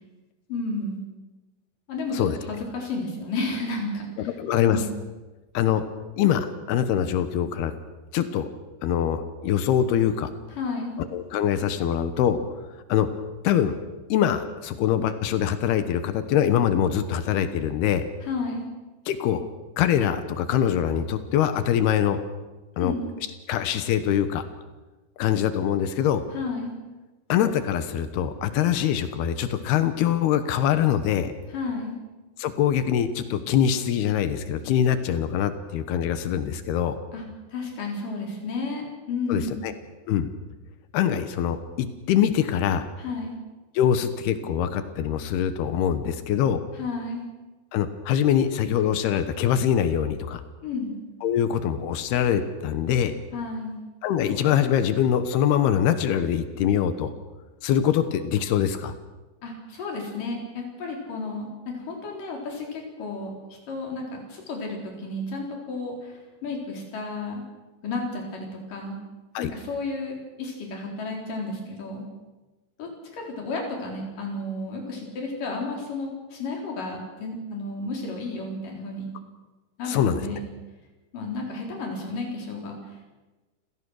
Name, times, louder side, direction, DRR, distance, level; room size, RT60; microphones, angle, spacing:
voice 1, 0.5-1.0 1.9-4.3 4.6-4.9 10.6-11.0 18.2-18.7 22.8-23.1 26.3-26.8 31.5-32.0 37.1-37.2 37.5-39.6 43.0-43.4 46.7-47.3 50.6-51.0 53.3-53.8 59.4-63.3 63.7-67.4 67.8-69.0 69.4-72.1 72.8-79.1 79.8-80.4 81.1-82.8, left 3 dB, 60° left, 0 dB, 5.6 m, -32 dB
voice 2, 4.4-4.8 5.5-5.8 6.2-7.7 8.1-8.5 8.8-10.3 11.0-12.4 12.9-13.1 13.4-13.8 14.1-18.0 19.1-19.5 19.8-22.2 22.8-22.9 23.5-24.5 25.2-26.2 27.3-31.3 32.4-37.0 39.3-39.7 40.1-40.3 40.9-42.8 43.7-46.6 47.7-50.4 51.2-53.1 54.0-57.1 57.6-58.9 69.3-69.5 79.9-80.3, left 9 dB, 85° left, 11 dB, 3.1 m, -23 dB
28.0 x 16.5 x 6.4 m, 1.2 s
omnidirectional pair, 4.5 m